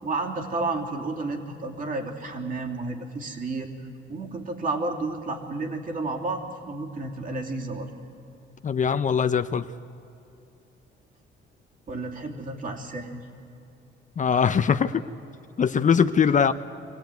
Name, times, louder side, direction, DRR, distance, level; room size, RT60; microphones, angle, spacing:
voice 1, 0.0-3.7 4.1-7.9 11.9-13.3 16.3-16.5, right 3 dB, 40° right, 1 dB, 3.2 m, -31 dB
voice 2, 8.6-9.7 14.2-15.0 15.6-16.5, left 7 dB, 40° left, 11 dB, 0.7 m, -21 dB
24.0 x 17.0 x 9.4 m, 2.8 s
cardioid pair, 90°, 20 cm